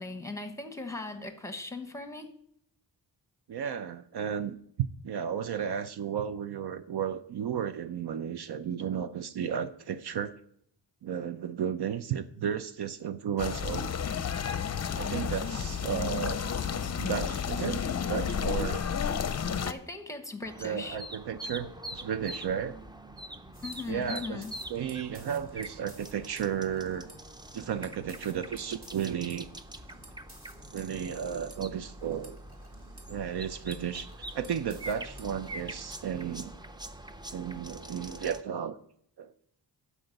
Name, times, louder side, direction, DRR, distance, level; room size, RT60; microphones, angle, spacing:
voice 1, 0.0-2.3 19.6-21.0 23.6-24.5, left 3 dB, 5° left, 7 dB, 1.1 m, -39 dB
voice 2, 3.5-10.3 11.0-13.9 14.9-16.4 17.0-17.8 18.1-18.8 20.6-22.8 23.9-24.4 24.7-27.1 27.5-29.5 30.7-32.4 33.1-34.1 34.3-36.5 37.3-38.8 39.2-39.3, right 8 dB, 65° right, 12 dB, 0.6 m, -33 dB
sound 1, 13.4-19.7, left 7 dB, 40° left, 0.6 m, -31 dB
sound 2, 20.4-38.4, right 1 dB, 10° right, 0.5 m, -44 dB
sound 3, 23.5-36.3, right 1 dB, 30° right, 2.3 m, -55 dB
12.0 x 5.0 x 6.5 m, 0.69 s
wide cardioid pair, 115°, 43 cm